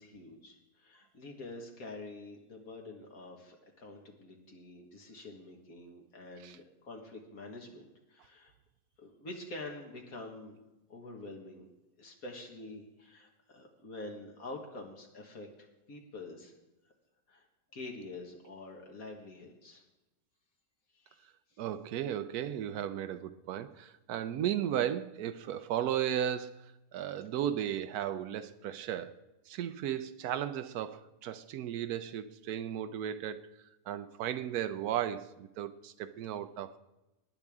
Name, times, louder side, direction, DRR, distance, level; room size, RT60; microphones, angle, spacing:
voice 1, 0.0-8.5 9.0-10.6 10.9-11.6 12.0-15.5 15.9-16.5 17.3-17.5 17.7-19.8 20.9-21.6, left 2 dB, 70° left, 1 dB, 2.0 m, -47 dB
voice 2, 21.6-29.2 29.5-33.4 33.9-36.8, right 10 dB, 85° right, 11 dB, 1.1 m, -35 dB
18.5 x 10.0 x 3.6 m, 0.98 s
omnidirectional pair, 1.6 m